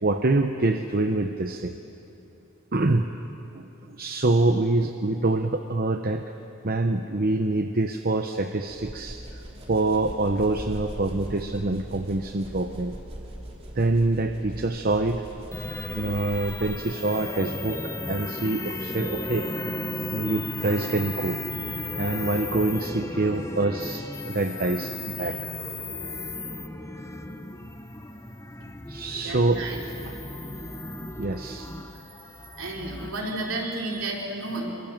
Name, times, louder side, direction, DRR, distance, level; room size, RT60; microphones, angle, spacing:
voice 1, 0.0-1.8 2.7-3.2 3.5-3.6 4.0-6.2 6.6-9.4 9.7-13.0 13.7-15.2 15.9-19.5 20.1-21.4 22.0-25.5 28.9-29.6 30.0-30.1 31.2-31.7, right 2 dB, 45° right, 6 dB, 0.8 m, -25 dB
sound 1, 8.7-17.0, equal, 30° right, 3.3 m, -40 dB
sound 2, 15.5-33.1, left 2 dB, 15° left, 1.0 m, -35 dB
voice 2, 29.2-29.8 32.6-34.7, right 2 dB, 65° right, -1 dB, 4.2 m, -32 dB
26.0 x 23.5 x 7.4 m, 2.9 s
head